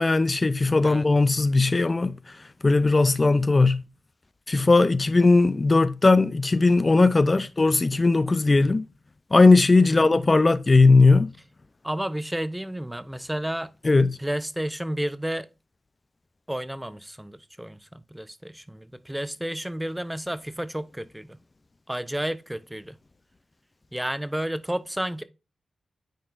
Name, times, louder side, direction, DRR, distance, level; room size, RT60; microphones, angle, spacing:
voice 1, 0.0-2.1 2.6-3.8 4.5-8.9 9.3-11.3 13.8-14.2, left 3 dB, 40° left, 0.5 m, -18 dB
voice 2, 9.8-10.1 11.8-13.7 14.2-15.5 16.5-21.4 21.9-23.0 23.9-25.2, right 1 dB, 10° right, 0.6 m, -31 dB
9.1 x 4.2 x 2.4 m
cardioid pair, 45°, 0 cm